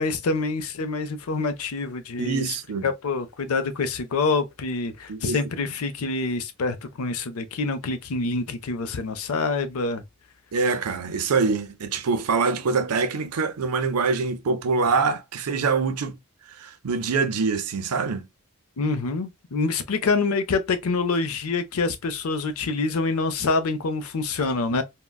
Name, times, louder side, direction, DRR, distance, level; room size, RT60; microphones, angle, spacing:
voice 1, 0.0-2.5 2.8-10.0 18.8-24.8, left 3 dB, 75° left, 0.5 m, -26 dB
voice 2, 2.2-2.9 5.1-5.4 5.7-5.8 10.5-16.2 16.5-18.3, right 4 dB, 90° right, 0.6 m, -25 dB
3.7 x 2.1 x 2.2 m
head